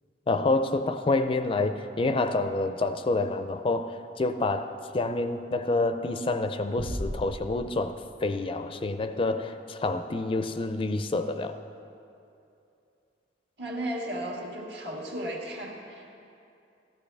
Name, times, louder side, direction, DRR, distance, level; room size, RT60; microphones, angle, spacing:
voice 1, 0.3-11.6, left 2 dB, 30° left, 9 dB, 0.4 m, -28 dB
sound 1, 6.8-8.5, equal, 40° right, 1.2 m, -36 dB
voice 2, 13.6-16.2, right 1 dB, 65° right, -1 dB, 1.8 m, -35 dB
14.5 x 13.5 x 3.4 m, 2.7 s
head